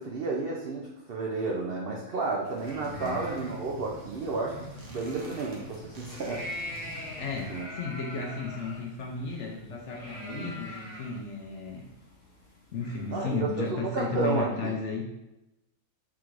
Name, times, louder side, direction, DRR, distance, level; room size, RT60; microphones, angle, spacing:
voice 1, 0.0-6.5 7.5-7.7 10.3-10.5 13.1-14.8, right 3 dB, 75° right, -1 dB, 0.5 m, -32 dB
sound 1, 2.4-13.4, left 1 dB, 40° left, 1.1 m, -44 dB
sound 2, 2.6-7.7, right 1 dB, 60° right, 1.1 m, -45 dB
voice 2, 2.8-3.3 7.1-11.9 12.7-15.1, left 4 dB, 65° left, 0 dB, 0.8 m, -34 dB
3.7 x 2.5 x 4.5 m, 0.95 s
omnidirectional pair, 1.6 m